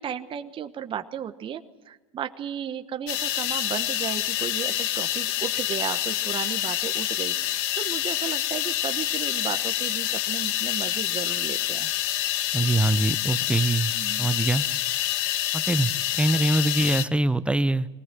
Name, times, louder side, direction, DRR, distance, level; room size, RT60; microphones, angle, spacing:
voice 1, 0.0-11.9 13.9-14.3, right 9 dB, 30° right, 8 dB, 1.2 m, -34 dB
sound 1, 3.1-17.0, left 13 dB, 60° left, 1.3 m, -27 dB
voice 2, 12.5-13.9 14.2-14.6 15.5-17.9, right 2 dB, 5° right, 14 dB, 0.8 m, -23 dB
23.0 x 19.0 x 7.6 m, 1.1 s
hypercardioid pair, 95°, 17 cm